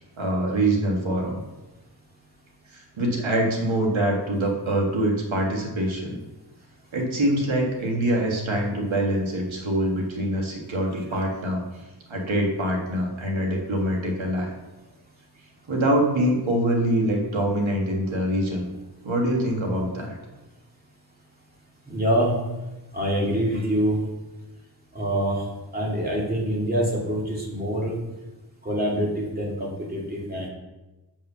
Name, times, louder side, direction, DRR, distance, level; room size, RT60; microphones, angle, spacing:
voice 1, 0.2-1.4 2.7-6.2 6.9-11.6 12.1-14.5 15.7-18.7 19.0-20.2, right 1 dB, 85° right, 0 dB, 1.8 m, -24 dB
voice 2, 21.9-22.4 22.9-24.0 24.9-25.4 25.7-28.0 28.6-30.5, equal, 20° right, -4 dB, 2.5 m, -25 dB
7.5 x 5.4 x 5.6 m, 1.1 s
wide cardioid pair, 90°, 46 cm